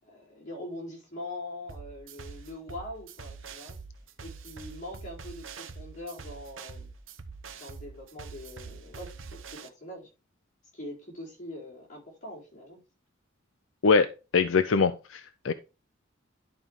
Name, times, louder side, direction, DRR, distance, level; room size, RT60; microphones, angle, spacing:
voice 1, 0.0-3.8 4.2-6.9 7.5-10.1 10.7-12.8, left 1 dB, 35° left, 4.5 m, -42 dB
sound 1, 1.7-9.7, right 5 dB, 80° right, 0.9 m, -44 dB
voice 2, 13.8-15.5, left 4 dB, 80° left, 0.6 m, -23 dB
11.0 x 4.8 x 3.6 m
head